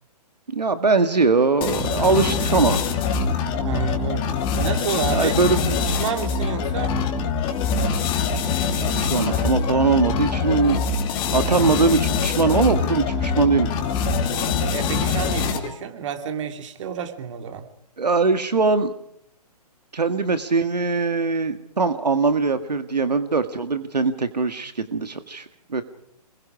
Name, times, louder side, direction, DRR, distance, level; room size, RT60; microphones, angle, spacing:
voice 1, 0.5-2.8 5.1-5.8 8.8-10.8 11.3-13.7 18.0-18.9 19.9-25.8, right 4 dB, 85° right, 9 dB, 1.9 m, -21 dB
sound 1, 1.6-15.8, left 5 dB, 25° left, 2.7 m, -24 dB
voice 2, 3.5-4.3 4.5-5.4 5.9-7.0 14.3-17.7, right 8 dB, 50° right, 6 dB, 2.8 m, -30 dB
28.5 x 21.5 x 4.9 m, 0.74 s
hypercardioid pair, 135°, 20 cm